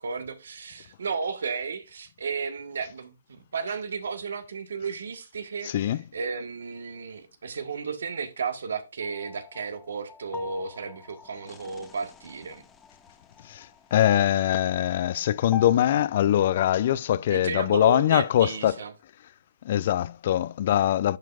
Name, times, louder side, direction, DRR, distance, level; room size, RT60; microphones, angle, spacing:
voice 1, 0.0-5.9 6.1-12.6 17.3-18.9, right 5 dB, 70° right, 1.4 m, -33 dB
voice 2, 5.6-6.0 13.4-18.7 19.6-21.2, left 11 dB, 45° left, 0.4 m, -23 dB
sound 1, 9.0-15.7, left 7 dB, 10° left, 1.1 m, -44 dB
10.5 x 5.8 x 2.4 m
hypercardioid pair, 140°, 0 cm